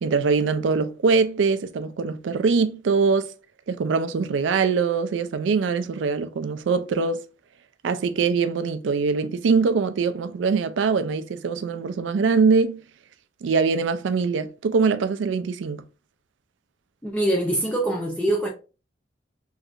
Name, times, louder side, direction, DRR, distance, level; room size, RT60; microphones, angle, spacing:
voice 1, 0.0-3.3 3.7-7.2 7.8-12.8 13.4-15.8, right 5 dB, 85° right, 0.4 m, -23 dB
voice 2, 17.0-18.5, right 1 dB, 5° left, 0.4 m, -23 dB
3.1 x 2.8 x 2.4 m
head